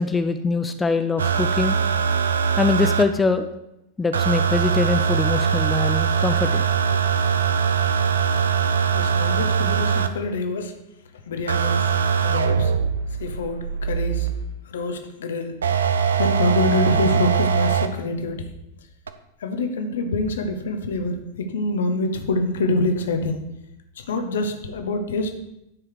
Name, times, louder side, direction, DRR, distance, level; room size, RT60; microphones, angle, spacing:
voice 1, 0.0-1.8 2.6-3.5 4.0-6.6, left 4 dB, 10° left, 8 dB, 0.4 m, -23 dB
sound 1, 1.2-3.0 4.1-10.1 11.5-14.4 15.6-17.9 19.1-19.2, right 7 dB, 70° right, 0.5 m, -21 dB
voice 2, 8.9-10.7 11.3-12.7 13.2-14.3 14.7-15.6 16.2-18.5 19.4-23.5 24.0-25.3, left 2 dB, 65° left, 6 dB, 0.9 m, -26 dB
9.7 x 4.8 x 4.8 m, 0.86 s
figure-of-eight pair, 90°, 0 cm